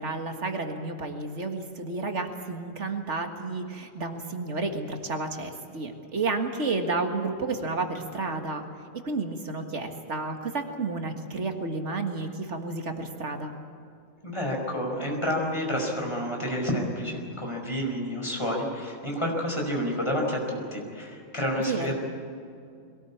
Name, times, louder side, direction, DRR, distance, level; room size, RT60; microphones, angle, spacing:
voice 1, 0.0-8.6 9.0-13.5 21.7-21.9, right 3 dB, 85° right, 4 dB, 2.1 m, -31 dB
voice 2, 14.2-21.9, equal, 25° left, 0 dB, 5.1 m, -29 dB
22.5 x 18.5 x 8.6 m, 2.4 s
omnidirectional pair, 1.2 m